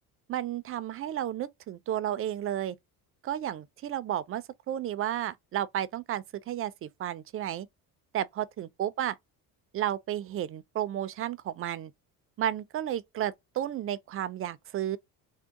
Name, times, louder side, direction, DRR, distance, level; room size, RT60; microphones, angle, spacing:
voice 1, 0.3-2.8 3.2-7.7 8.1-9.2 9.7-11.9 12.4-15.0, right 11 dB, 40° right, 0.4 m, -32 dB
3.6 x 2.1 x 3.9 m
cardioid pair, 135°, 35 cm